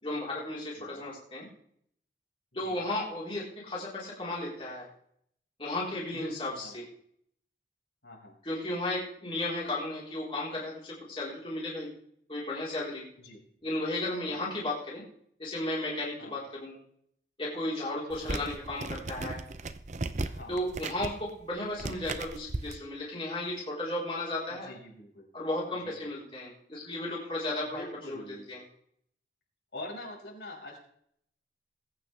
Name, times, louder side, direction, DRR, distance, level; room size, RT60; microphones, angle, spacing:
voice 1, 0.0-1.5 2.5-4.9 5.6-6.8 8.4-11.9 12.3-13.0 13.6-15.0 15.4-16.8 17.4-19.4 20.5-24.7 25.3-28.2 28.5-28.6, left 1 dB, 30° left, -6 dB, 4.3 m, -34 dB
voice 2, 0.8-1.1 2.5-2.8 6.1-6.8 8.0-8.4 13.2-13.4 14.2-14.5 16.2-16.4 18.1-18.3 20.2-20.7 24.5-25.3 25.8-25.9 27.6-28.5 29.7-30.8, left 1 dB, 85° left, -3 dB, 5.8 m, -45 dB
sound 1, 18.1-22.7, right 2 dB, 40° right, 0.7 m, -37 dB
20.5 x 9.3 x 3.5 m, 0.67 s
head